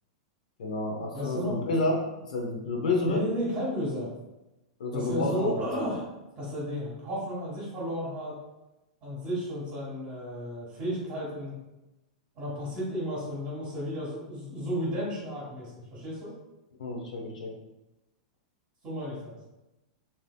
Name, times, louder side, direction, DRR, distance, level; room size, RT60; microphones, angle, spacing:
voice 1, 0.6-1.9 2.3-3.2 4.8-5.6 16.8-17.5, left 2 dB, 80° left, 0 dB, 0.7 m, -29 dB
voice 2, 1.1-1.6 3.1-4.1 4.9-6.0 6.4-8.3 9.0-11.5 12.3-16.3 18.8-19.3, equal, 35° right, -8 dB, 1.3 m, -33 dB
3.3 x 2.7 x 2.2 m, 0.98 s
hypercardioid pair, 125°, 4 cm